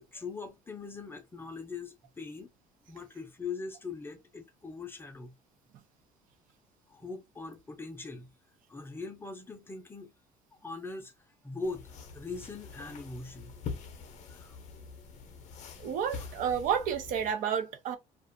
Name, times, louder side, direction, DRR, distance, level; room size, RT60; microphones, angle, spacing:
voice 1, 0.0-2.5 2.9-5.3 6.9-8.3 8.7-10.1 10.6-13.6 14.3-14.6, left 4 dB, 15° left, 0.5 m, -41 dB
sound 1, 11.6-17.3, left 5 dB, 55° left, 0.7 m, -44 dB
voice 2, 15.8-18.0, right 8 dB, 65° right, 0.7 m, -30 dB
2.4 x 2.4 x 2.6 m
cardioid pair, 125°, 15 cm